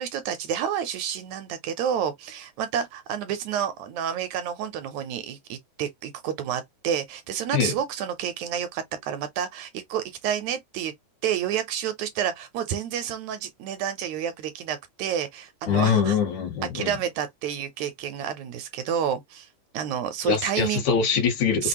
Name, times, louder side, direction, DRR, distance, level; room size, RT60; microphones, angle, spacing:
voice 1, 0.0-10.9 11.2-16.2 16.7-19.5 19.7-20.8 21.6-21.7, right 9 dB, 75° right, 1.9 m, -29 dB
voice 2, 15.7-16.9 20.2-21.7, left 6 dB, 70° left, 3.0 m, -23 dB
5.9 x 2.4 x 2.9 m
omnidirectional pair, 3.5 m